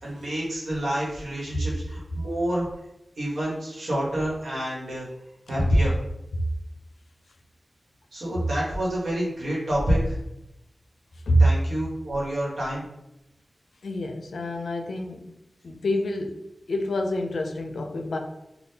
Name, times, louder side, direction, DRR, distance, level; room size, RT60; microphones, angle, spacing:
voice 1, 0.0-2.7 3.2-5.1 5.5-5.9 8.1-10.2 11.4-12.8, right 1 dB, 80° right, -5 dB, 1.2 m, -27 dB
voice 2, 13.8-15.3 15.6-18.2, equal, 85° left, 4 dB, 0.4 m, -26 dB
3.6 x 2.3 x 2.7 m, 0.89 s
wide cardioid pair, 85°, 0 cm